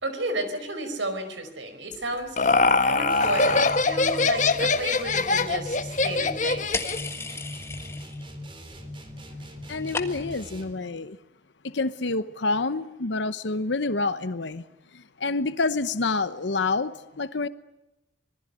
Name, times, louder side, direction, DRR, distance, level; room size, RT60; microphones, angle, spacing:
voice 1, 0.0-6.9 7.7-7.8, right 2 dB, 80° right, 9 dB, 5.0 m, -32 dB
Laughter, 1.9-7.1, left 3 dB, 40° left, 1.2 m, -23 dB
sound 1, 3.1-10.9, left 1 dB, 25° right, 3.5 m, -40 dB
sound 2, 6.7-8.3 8.6-9.2 9.4-10.5, left 3 dB, 15° left, 1.6 m, -35 dB
voice 2, 9.7-11.2 11.6-14.6 14.9-17.5, left 3 dB, 70° left, 13 dB, 0.9 m, -28 dB
26.5 x 20.0 x 9.9 m, 0.92 s
head